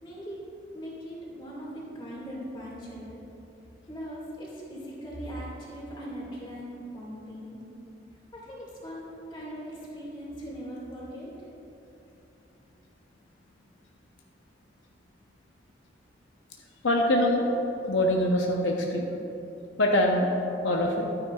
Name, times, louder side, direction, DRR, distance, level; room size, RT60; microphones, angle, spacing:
voice 1, 0.0-3.2 3.9-7.6 8.3-11.3, equal, 25° left, -5 dB, 2.0 m, -40 dB
voice 2, 16.8-17.5 17.9-19.1 19.8-20.4 20.6-21.1, left 1 dB, 80° left, 0 dB, 0.8 m, -24 dB
12.0 x 9.6 x 2.4 m, 2.9 s
head